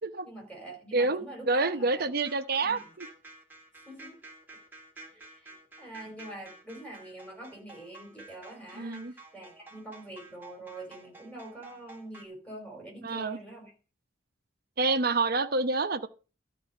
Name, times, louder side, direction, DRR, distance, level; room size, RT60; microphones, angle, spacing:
voice 1, 0.2-2.1 2.6-2.8 3.9-4.2 5.1-13.7, right 1 dB, 5° left, 4.4 m, -45 dB
voice 2, 0.9-3.1 8.7-9.1 13.0-13.4 14.8-16.1, right 3 dB, 50° right, 0.9 m, -28 dB
sound 1, 2.2-12.2, right 2 dB, 10° right, 2.0 m, -51 dB
13.0 x 4.8 x 6.5 m
head